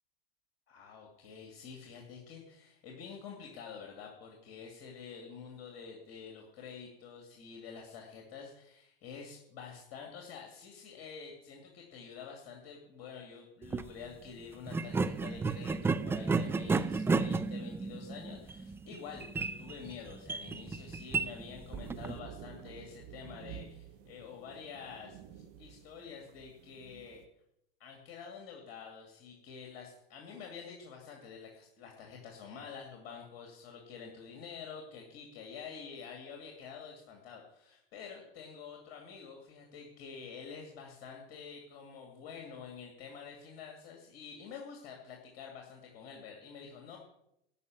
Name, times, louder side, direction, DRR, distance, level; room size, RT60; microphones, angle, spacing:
voice 1, 0.7-27.2 27.8-47.0, left 6 dB, 50° left, 1 dB, 2.6 m, -48 dB
sound 1, 13.6-13.9 14.7-22.2, right 4 dB, 10° right, 0.4 m, -33 dB
sound 2, 21.7-27.3, right 9 dB, 50° right, 1.3 m, -50 dB
12.5 x 5.7 x 9.4 m, 0.80 s
figure-of-eight pair, 85°, 30 cm